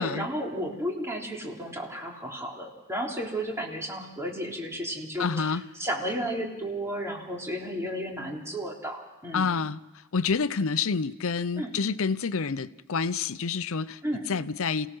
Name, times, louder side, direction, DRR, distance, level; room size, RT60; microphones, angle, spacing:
voice 1, 0.0-9.5 11.6-11.7 14.0-14.3, equal, 10° right, -1 dB, 3.5 m, -33 dB
voice 2, 5.2-5.6 9.3-9.8 10.1-14.0 14.3-14.9, left 5 dB, 65° left, 15 dB, 0.6 m, -28 dB
28.0 x 17.5 x 6.2 m, 1.1 s
head